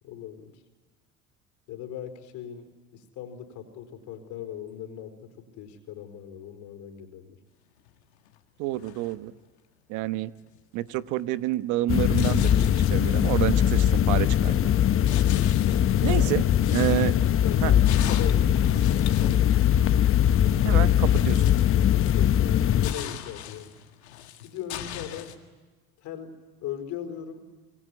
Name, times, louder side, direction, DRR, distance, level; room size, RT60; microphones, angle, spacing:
voice 1, 0.0-0.6 1.7-7.4 15.7-16.3 16.7-16.9 17.2-19.5 20.5-20.9 21.9-23.7 24.4-25.3 26.0-27.4, left 9 dB, 65° left, 7 dB, 4.4 m, -39 dB
dig stones, 7.9-8.0 8.2-8.4 8.7-9.5 10.4-10.6 10.9-11.3 12.1-13.5 13.9-14.6 15.1-19.7 20.5-20.6 20.8-22.6 22.8-25.3, left 11 dB, 85° left, 1.9 m, -39 dB
voice 2, 8.6-9.3 9.9-10.3 10.7-12.5 12.9-14.7 16.0-16.4 16.7-17.1 17.6-17.7 20.6-21.6, right 15 dB, 65° right, 14 dB, 1.0 m, -28 dB
sound 1, 11.9-22.9, left 10 dB, 40° left, 1.1 m, -21 dB
26.0 x 22.5 x 9.8 m, 1.3 s
hypercardioid pair, 75°, 32 cm